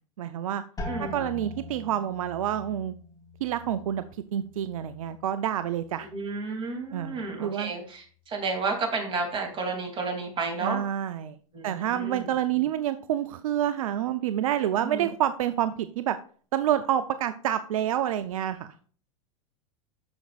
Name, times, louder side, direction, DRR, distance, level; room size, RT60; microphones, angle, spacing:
voice 1, 0.2-0.6 1.0-2.9 3.4-4.0 4.3-6.1 6.9-7.7 10.6-11.4 11.6-16.2 16.5-18.7, right 11 dB, 75° right, 12 dB, 0.5 m, -28 dB
sound 1, 0.8-6.4 6.7-7.4 8.0-8.4, left 2 dB, 20° left, 3.0 m, -43 dB
voice 2, 0.9-1.3 6.1-10.8 11.5-12.3 14.8-15.0, right 3 dB, 30° right, 2 dB, 2.7 m, -32 dB
13.0 x 5.2 x 2.4 m, 0.43 s
hypercardioid pair, 105°, 18 cm